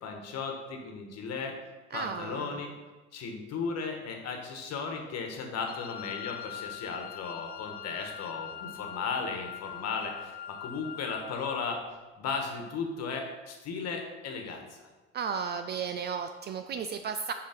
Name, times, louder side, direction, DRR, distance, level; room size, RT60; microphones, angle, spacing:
voice 1, 0.0-1.6 1.9-2.7 3.1-11.8 12.2-14.9, left 5 dB, 45° left, 3 dB, 1.4 m, -36 dB
voice 2, 1.9-2.6 15.1-17.3, right 6 dB, 30° right, 8 dB, 0.3 m, -34 dB
Wind instrument woodwind instrument, 5.7-11.7, left 10 dB, 25° left, 0.5 m, -42 dB
5.4 x 5.0 x 5.1 m, 1.2 s
hypercardioid pair, 80°, 36 cm